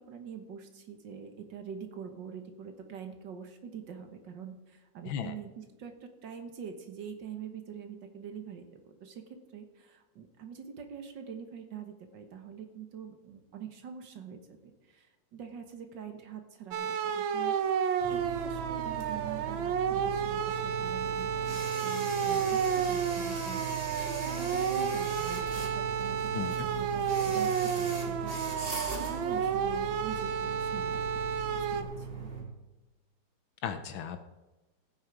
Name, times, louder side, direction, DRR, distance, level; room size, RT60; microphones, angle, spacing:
voice 1, 0.0-31.2 31.5-32.3, right 7 dB, 65° right, 6 dB, 1.9 m, -45 dB
sound 1, 16.7-31.8, right 7 dB, 85° right, 1.6 m, -31 dB
sound 2, 18.0-32.4, right 5 dB, 30° right, 2.7 m, -39 dB
voice 2, 33.6-34.3, left 8 dB, 80° left, 8 dB, 1.6 m, -36 dB
15.0 x 8.9 x 4.7 m, 1.1 s
omnidirectional pair, 2.1 m